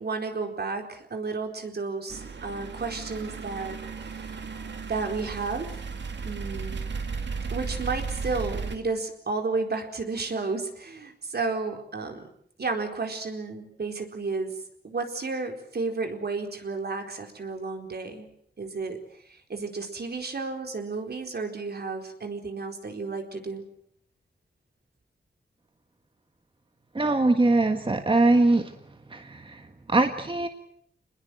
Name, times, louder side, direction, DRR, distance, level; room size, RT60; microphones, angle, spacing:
voice 1, 0.0-4.4 4.9-5.8 6.2-6.8 7.5-12.3 12.6-14.5 14.8-18.3 18.6-19.0 19.3-23.6, right 4 dB, 65° right, 4 dB, 4.4 m, -32 dB
sound 1, 2.1-8.8, right 5 dB, 80° right, 2.5 m, -35 dB
voice 2, 26.9-28.7 29.1-30.5, right 2 dB, 30° right, 7 dB, 1.6 m, -22 dB
27.5 x 20.5 x 7.8 m, 0.67 s
wide cardioid pair, 120°, 18 cm